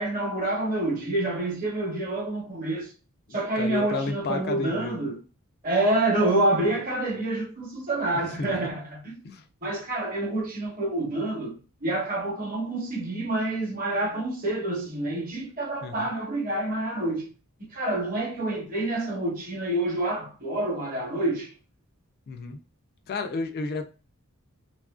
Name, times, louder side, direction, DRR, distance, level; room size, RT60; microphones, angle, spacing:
voice 1, 0.0-2.9 3.3-5.2 5.6-9.2 9.6-17.3 17.6-21.5, right 2 dB, 40° right, 0.9 m, -27 dB
voice 2, 3.6-5.0 8.2-8.7 9.2-9.4 15.8-16.1 22.3-22.6 23.1-23.9, left 3 dB, 45° left, 0.3 m, -32 dB
2.7 x 2.4 x 2.3 m
head